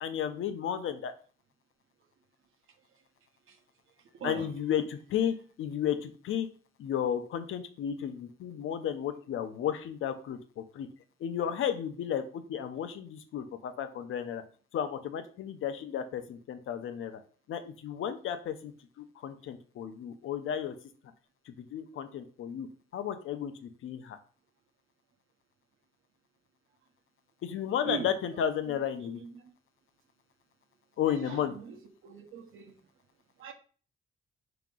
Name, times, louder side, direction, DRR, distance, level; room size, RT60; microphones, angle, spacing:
voice 1, 0.0-1.1 4.2-6.5 6.8-10.9 11.2-14.4 14.7-17.2 17.5-18.7 19.2-20.7 21.5-22.7 22.9-24.2 27.4-29.2 31.0-31.5, left 9 dB, 80° left, 0.6 m, -33 dB
voice 2, 31.1-31.8 32.0-32.8 33.4-33.5, right 8 dB, 85° right, 0.9 m, -40 dB
4.9 x 2.9 x 3.7 m
wide cardioid pair, 175°, 21 cm